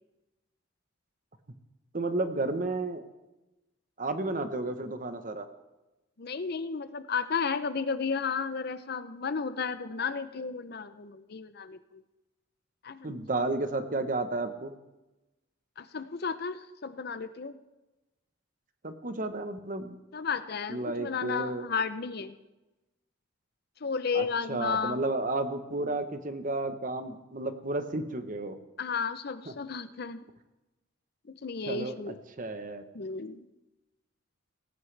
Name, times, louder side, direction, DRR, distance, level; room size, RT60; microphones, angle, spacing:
voice 1, 1.9-3.0 4.0-5.5 13.0-14.7 18.8-19.9 20.7-21.7 24.1-28.6 29.5-29.6 31.7-32.8, right 2 dB, 40° right, 9 dB, 1.0 m, -32 dB
voice 2, 6.2-12.0 12.8-13.1 15.8-17.6 20.1-22.3 23.8-25.0 28.8-30.2 31.3-32.2 32.9-33.4, left 5 dB, 50° left, 12 dB, 0.6 m, -33 dB
18.0 x 16.0 x 3.3 m, 1.0 s
head